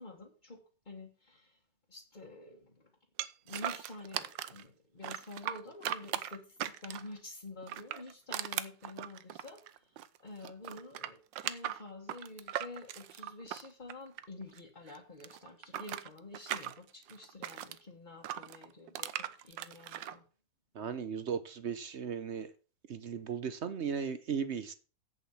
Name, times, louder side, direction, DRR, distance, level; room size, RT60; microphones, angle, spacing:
voice 1, 0.0-1.6 1.9-2.9 3.4-20.2, left 2 dB, 25° left, -1 dB, 1.4 m, -49 dB
sound 1, 3.2-4.6 5.0-7.2 7.6-10.2 10.4-14.6 14.9-17.8 18.2-20.1, right 12 dB, 80° right, 1.4 m, -39 dB
voice 2, 20.8-22.5 22.9-24.7, right 7 dB, 55° right, 12 dB, 0.8 m, -36 dB
8.2 x 7.3 x 7.1 m, 0.37 s
omnidirectional pair, 2.0 m